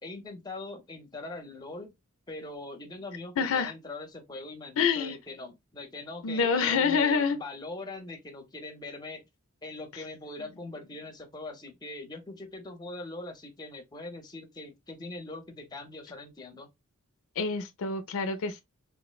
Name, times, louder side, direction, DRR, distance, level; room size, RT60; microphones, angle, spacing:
voice 1, 0.0-1.9 2.3-9.2 9.6-16.7, left 2 dB, 20° left, 0.6 m, -41 dB
voice 2, 3.4-3.7 4.8-5.2 6.2-7.4 17.4-18.6, left 5 dB, 65° left, 0.4 m, -26 dB
3.5 x 2.0 x 2.2 m
head